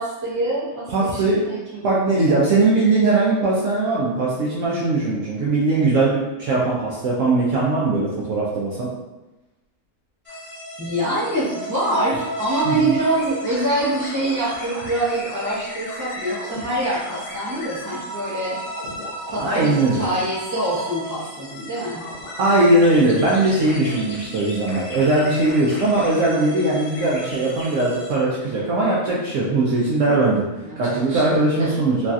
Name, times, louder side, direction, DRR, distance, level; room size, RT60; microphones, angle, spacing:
voice 1, 0.0-2.4 10.8-18.6 19.3-22.0 30.6-31.8, right 1 dB, 20° right, -8 dB, 0.5 m, -25 dB
voice 2, 0.9-1.4 1.8-8.9 12.7-12.8 19.4-20.0 22.4-30.4 30.8-32.1, right 2 dB, 70° right, -5 dB, 0.8 m, -20 dB
sound 1, 10.3-28.2, equal, 85° left, 0.5 m, -36 dB
sound 2, 13.0-20.9 22.0-22.3 22.7-26.4 27.0-27.7, equal, 65° left, 1.2 m, -37 dB
3.1 x 2.6 x 2.3 m, 1.0 s
omnidirectional pair, 1.7 m